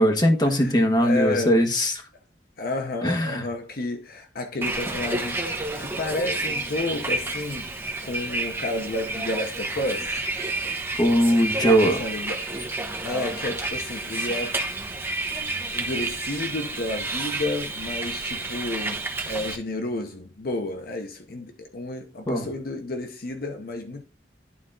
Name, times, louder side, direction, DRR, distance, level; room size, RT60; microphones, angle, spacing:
voice 1, 0.0-1.9 3.0-3.4 11.0-12.0 22.3-22.5, equal, 25° left, 1.4 m, -20 dB
voice 2, 1.0-1.6 2.6-5.4 5.8-7.7 8.0-10.2 11.6-12.5 13.0-14.6 15.7-24.0, left 2 dB, 55° left, 0.9 m, -31 dB
Bus, 4.6-19.6, right 2 dB, 15° right, 1.1 m, -30 dB
11.5 x 4.1 x 3.7 m
head